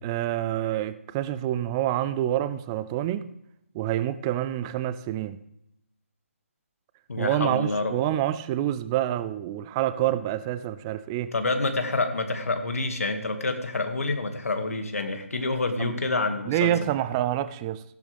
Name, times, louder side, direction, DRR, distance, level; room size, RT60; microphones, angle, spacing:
voice 1, 0.0-3.3 3.7-5.4 7.2-11.3 15.8-15.9 16.5-17.8, right 12 dB, 20° right, 14 dB, 0.4 m, -27 dB
voice 2, 7.1-7.9 11.3-16.7, left 3 dB, 80° left, 6 dB, 2.1 m, -27 dB
15.0 x 12.0 x 3.5 m, 0.80 s
hypercardioid pair, 155°, 8 cm